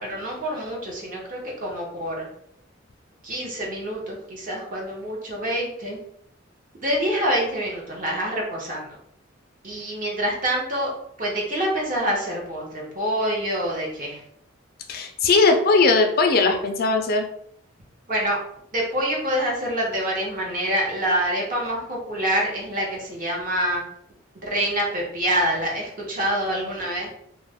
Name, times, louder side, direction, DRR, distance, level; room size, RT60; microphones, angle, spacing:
voice 1, 0.0-2.3 3.2-6.0 6.8-8.9 9.6-10.9 11.2-14.2 18.1-18.4 18.7-23.8 24.4-27.1, equal, 40° right, -2 dB, 0.7 m, -26 dB
voice 2, 14.9-17.3, left 3 dB, 45° left, 4 dB, 0.3 m, -19 dB
2.3 x 2.0 x 3.4 m, 0.71 s
head